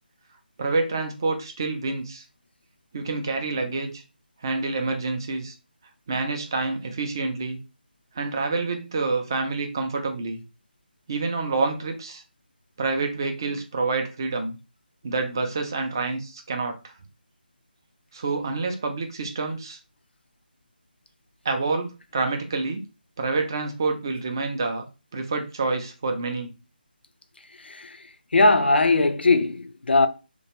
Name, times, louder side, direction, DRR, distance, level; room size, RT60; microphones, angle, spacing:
voice 1, 0.6-2.2 2.9-4.0 4.4-5.5 6.1-7.6 8.2-10.4 11.1-12.2 12.8-14.6 15.0-16.9 18.1-19.8 21.4-22.8 23.2-24.9 25.1-26.5, right 3 dB, 25° right, 0.3 m, -27 dB
voice 2, 27.6-28.0 28.3-30.1, left 3 dB, 85° left, 0.4 m, -19 dB
2.2 x 2.0 x 2.8 m
figure-of-eight pair, 170°, 6 cm